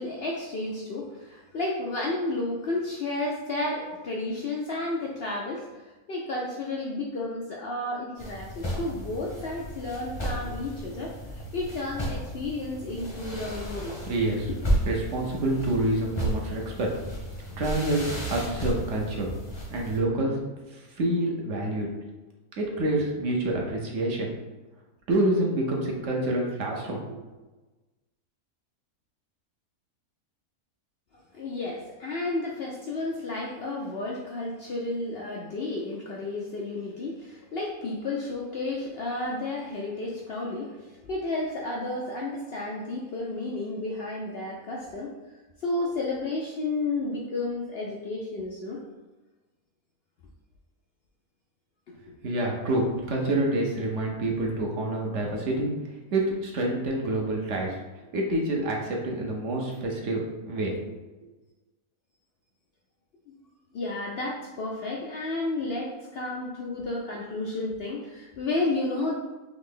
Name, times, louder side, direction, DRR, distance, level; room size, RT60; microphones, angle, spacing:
voice 1, 0.0-14.0 14.5-14.6 31.3-45.1 45.6-48.8 52.7-52.9 63.3-63.4 63.7-69.1, left 2 dB, 70° left, -2 dB, 0.6 m, -32 dB
sound 1, 8.2-20.0, equal, 25° left, 0.7 m, -33 dB
voice 2, 14.1-14.5 14.9-16.9 17.6-19.3 19.7-20.3 20.7-21.9 22.6-24.3 25.1-27.1 52.2-55.7 56.1-57.8 58.1-60.9, right 1 dB, 60° right, -1 dB, 1.0 m, -27 dB
3.8 x 3.0 x 3.7 m, 1.2 s
omnidirectional pair, 1.6 m